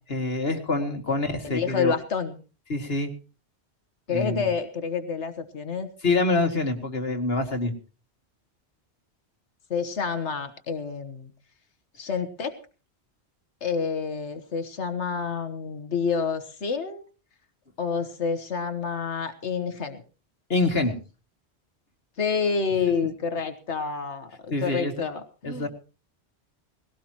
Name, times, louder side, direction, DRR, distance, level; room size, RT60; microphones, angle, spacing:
voice 1, 0.1-1.9 2.7-3.1 4.1-4.4 6.0-7.7 20.5-20.9 24.5-24.9 25.4-25.7, left 3 dB, 60° left, 4 dB, 2.6 m, -25 dB
voice 2, 1.4-2.4 4.1-5.9 9.7-11.3 12.0-12.5 13.6-17.0 17.8-20.0 22.2-25.7, left 5 dB, 85° left, 7 dB, 1.6 m, -28 dB
20.0 x 17.0 x 3.0 m, 0.35 s
omnidirectional pair, 1.1 m